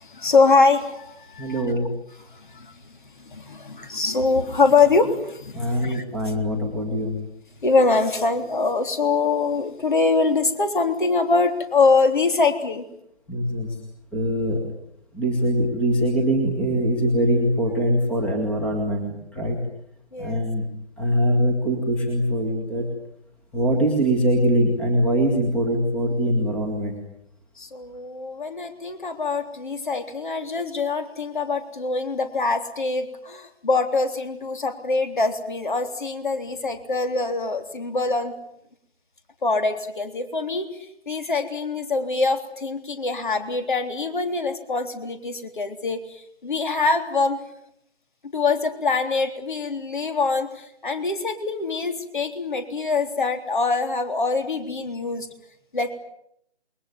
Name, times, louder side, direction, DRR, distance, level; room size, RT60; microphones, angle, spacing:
voice 1, 0.0-1.7 2.3-2.8 3.2-6.0 7.6-12.8 20.1-20.4 27.6-38.3 39.4-40.7 41.1-47.4 48.3-55.3 55.7-56.0, left 3 dB, 45° left, 8 dB, 3.7 m, -23 dB
voice 2, 1.4-1.9 5.5-7.2 13.3-13.7 14.1-14.6 15.1-19.6 20.2-20.6 21.0-22.8 23.5-27.0, equal, 5° left, 0 dB, 2.1 m, -22 dB
28.5 x 21.5 x 9.3 m, 0.75 s
figure-of-eight pair, 155°, 34 cm